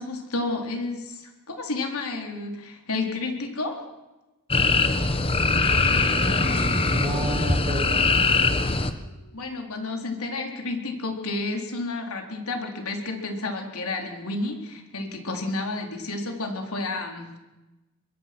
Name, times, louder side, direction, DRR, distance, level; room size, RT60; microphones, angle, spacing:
voice 1, 0.0-3.8 9.3-17.4, left 2 dB, 80° left, 3 dB, 4.1 m, -31 dB
sound 1, 4.5-8.9, left 3 dB, 25° left, 1.3 m, -22 dB
voice 2, 5.8-8.1, right 1 dB, 25° right, 5 dB, 2.8 m, -32 dB
Acoustic guitar, 6.2-9.7, left 1 dB, 50° left, 2.6 m, -42 dB
23.0 x 22.5 x 6.2 m, 1.1 s
head